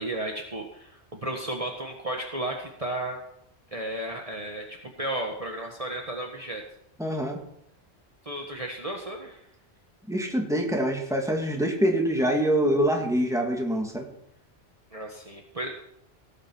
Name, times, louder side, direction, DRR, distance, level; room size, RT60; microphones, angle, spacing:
voice 1, 0.0-3.2 3.7-6.6 8.2-9.4 14.9-15.7, right 1 dB, 35° right, 1 dB, 1.6 m, -33 dB
voice 2, 7.0-7.4 10.1-14.1, equal, 5° right, 1 dB, 2.4 m, -25 dB
18.5 x 9.1 x 6.0 m, 0.75 s
omnidirectional pair, 1.1 m